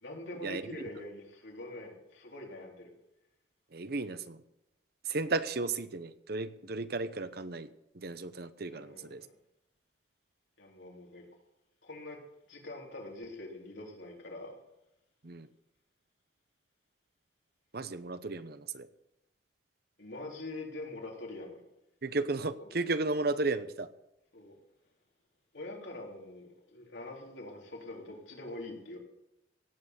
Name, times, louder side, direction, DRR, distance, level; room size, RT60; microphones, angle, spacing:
voice 1, 0.0-2.9 8.7-9.1 10.6-11.3 11.8-14.6 20.0-21.6 22.6-22.7 24.3-24.5 25.5-29.0, left 2 dB, 80° left, -1 dB, 4.0 m, -44 dB
voice 2, 3.7-4.4 5.0-7.7 7.9-9.3 15.2-15.5 17.7-18.9 22.0-23.9, right 3 dB, 60° right, 12 dB, 0.9 m, -34 dB
17.0 x 8.2 x 8.1 m, 0.90 s
head